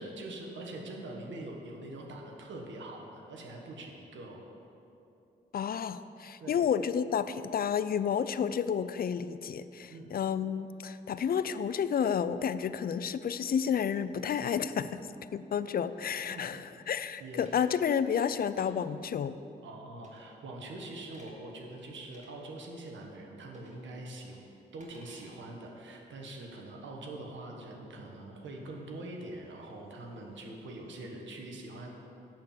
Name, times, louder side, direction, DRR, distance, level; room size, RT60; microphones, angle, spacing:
voice 1, 0.0-4.4 6.4-6.6 9.9-10.2 16.3-16.5 17.2-17.5 19.6-24.4 24.7-31.9, right 2 dB, 70° right, 0 dB, 1.4 m, -44 dB
voice 2, 5.5-14.9 15.3-19.4, left 7 dB, 50° left, 14 dB, 0.4 m, -31 dB
sound 1, 16.9-17.6 18.2-18.7 20.0-20.3 20.7-21.3 22.0-22.3 23.5-23.8 24.1-25.3, right 1 dB, 35° right, 2.2 m, -60 dB
10.5 x 4.6 x 7.3 m, 2.9 s
supercardioid pair, 50°, 20 cm